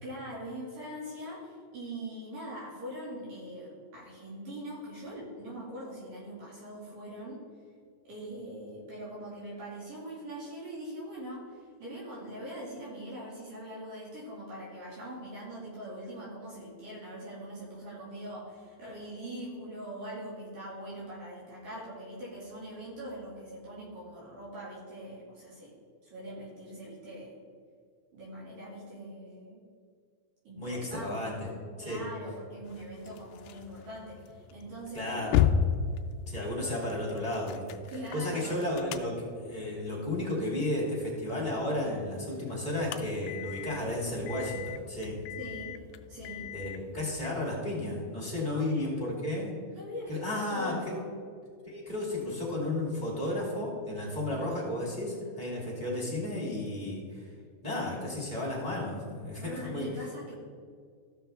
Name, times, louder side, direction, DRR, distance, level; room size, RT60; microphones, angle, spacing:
voice 1, 0.0-7.4 8.0-25.7 26.0-27.4 28.1-29.6 30.5-31.3 31.8-35.4 37.9-38.5 45.4-45.8 46.1-46.5 48.4-48.9 49.7-51.1 59.4-60.3, right 1 dB, 60° right, -7 dB, 3.8 m, -42 dB
voice 2, 30.6-31.5 31.8-32.1 34.9-35.5 36.3-45.2 46.5-49.5 50.1-50.9 51.7-57.3 57.6-59.9, left 1 dB, 15° left, -6 dB, 2.0 m, -33 dB
sound 1, 32.6-47.3, left 8 dB, 85° left, 2.1 m, -36 dB
16.0 x 6.2 x 3.5 m, 2.1 s
omnidirectional pair, 4.7 m